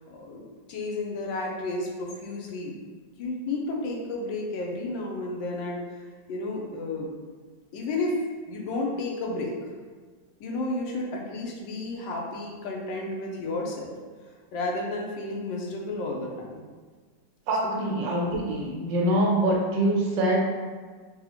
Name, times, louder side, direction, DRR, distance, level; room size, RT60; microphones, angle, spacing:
voice 1, 0.1-2.8 3.2-6.0 6.3-7.1 7.7-8.2 8.5-9.5 10.4-13.9 14.5-16.6 17.6-17.8, left 2 dB, 90° left, -1 dB, 1.4 m, -32 dB
voice 2, 17.5-20.4, right 1 dB, 75° right, -2 dB, 1.4 m, -24 dB
3.9 x 2.4 x 2.9 m, 1.5 s
omnidirectional pair, 2.0 m